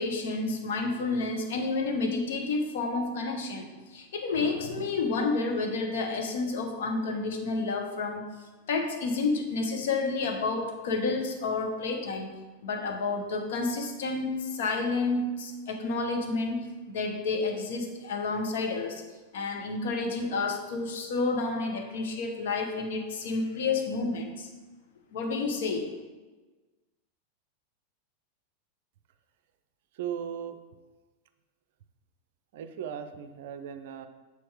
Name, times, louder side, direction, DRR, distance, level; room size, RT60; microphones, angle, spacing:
voice 1, 0.0-8.3 8.7-12.3 12.6-19.0 19.3-24.5 25.1-25.9, left 3 dB, 55° left, 4 dB, 0.9 m, -30 dB
voice 2, 30.0-30.6 32.5-34.1, right 8 dB, 55° right, 10 dB, 0.4 m, -37 dB
6.9 x 4.4 x 4.7 m, 1.2 s
figure-of-eight pair, 90°, 0 cm